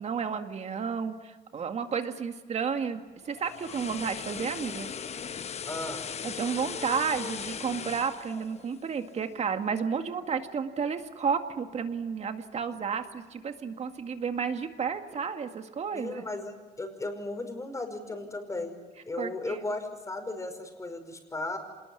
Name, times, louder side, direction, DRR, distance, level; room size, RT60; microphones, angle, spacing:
voice 1, 0.0-4.9 6.2-16.3 19.2-19.6, right 6 dB, 40° right, 7 dB, 2.0 m, -32 dB
sound 1, 3.2-9.4 9.8-10.0, left 7 dB, 40° left, 1.0 m, -38 dB
voice 2, 5.7-6.1 15.9-18.8 19.1-21.6, left 2 dB, 20° left, 6 dB, 5.3 m, -36 dB
26.5 x 20.5 x 9.8 m, 1.4 s
cardioid pair, 110°, 17 cm